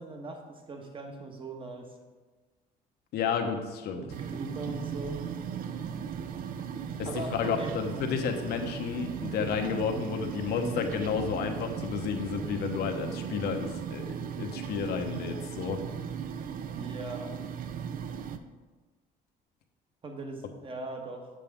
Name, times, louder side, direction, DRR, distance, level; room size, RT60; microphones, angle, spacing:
voice 1, 0.0-1.9 3.9-5.2 7.0-7.8 16.7-17.3 20.0-21.3, right 2 dB, 30° right, 3 dB, 1.2 m, -40 dB
voice 2, 3.1-4.0 7.0-7.1 7.4-15.8, left 6 dB, 70° left, 5 dB, 0.9 m, -31 dB
sound 1, 4.1-18.4, right 7 dB, 55° right, 0.5 m, -37 dB
7.5 x 6.9 x 3.5 m, 1.3 s
cardioid pair, 110°, 17 cm